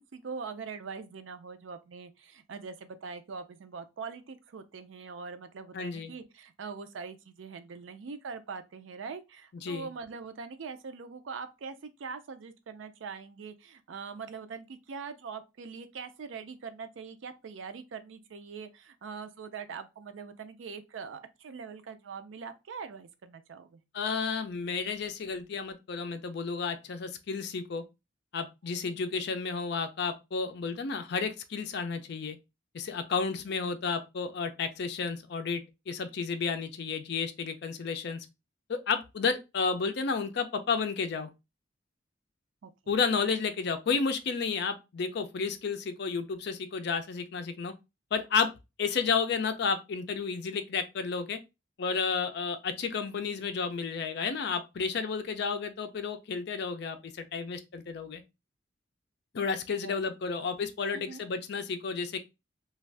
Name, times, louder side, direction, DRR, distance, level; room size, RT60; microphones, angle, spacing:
voice 1, 0.1-23.8 42.6-42.7 59.8-59.9 60.4-60.5 60.9-61.2, right 5 dB, 80° right, 0.4 m, -42 dB
voice 2, 5.7-6.1 9.6-9.9 23.9-27.8 28.3-32.4 32.7-38.3 38.7-41.3 42.9-47.7 48.1-48.5 48.8-51.4 51.8-58.2 59.3-62.2, left 5 dB, 60° left, 0.4 m, -32 dB
2.5 x 2.3 x 3.2 m
head